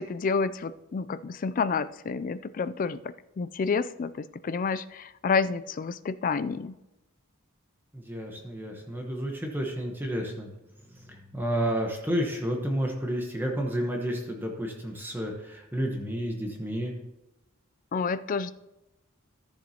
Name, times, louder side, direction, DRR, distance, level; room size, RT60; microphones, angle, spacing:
voice 1, 0.0-3.0 3.4-6.8 17.9-18.5, left 5 dB, 40° left, 14 dB, 0.3 m, -29 dB
voice 2, 7.9-10.5 10.9-16.9, equal, 10° right, 1 dB, 1.0 m, -31 dB
13.0 x 7.3 x 2.9 m, 0.95 s
head